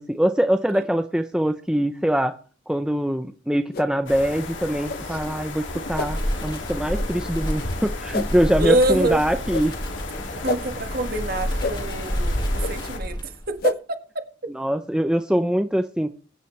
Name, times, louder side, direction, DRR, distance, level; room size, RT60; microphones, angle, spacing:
voice 1, 0.0-2.4 2.7-9.7 14.5-16.1, equal, 5° right, 0.5 m, -23 dB
sound 1, 3.7-3.9 4.8-5.0 5.9-6.1 6.9-7.1 8.1-8.3 9.5-9.7 10.4-10.6 11.6-11.7 12.6-12.7 13.6-13.8, left 3 dB, 50° left, 0.6 m, -28 dB
sound 2, 4.1-13.0, left 2 dB, 75° left, 2.3 m, -35 dB
Wind, 5.8-13.6, equal, 25° left, 1.9 m, -30 dB
voice 2, 8.6-9.2 10.4-14.2, right 1 dB, 50° right, 1.7 m, -25 dB
22.0 x 9.5 x 3.2 m
head